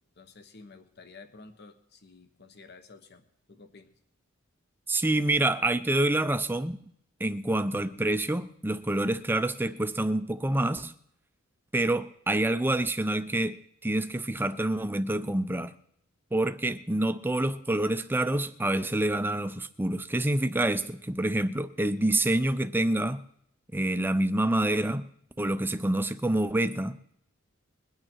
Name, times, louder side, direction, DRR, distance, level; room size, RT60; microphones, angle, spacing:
voice 1, 0.2-3.9, left 3 dB, 50° left, 1.1 m, -51 dB
voice 2, 4.9-6.8 7.2-10.9 11.7-13.6 13.8-15.7 16.3-23.2 23.7-25.1 25.4-27.1, right 1 dB, 10° right, 0.5 m, -27 dB
21.5 x 8.9 x 4.5 m
head